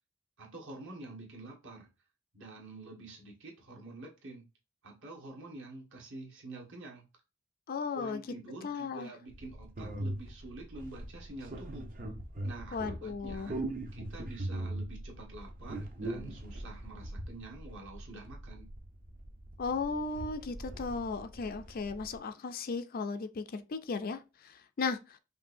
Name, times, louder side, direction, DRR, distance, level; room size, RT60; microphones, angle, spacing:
voice 1, 0.4-1.9 2.3-4.4 4.8-7.0 7.9-11.9 12.4-13.6 13.9-18.7, right 2 dB, 60° right, 1.6 m, -47 dB
voice 2, 7.7-8.2 8.6-9.1 12.7-13.5 19.6-25.2, left 4 dB, 40° left, 0.4 m, -36 dB
sound 1, 9.3-22.2, right 1 dB, 40° right, 0.7 m, -41 dB
5.4 x 2.6 x 2.6 m
head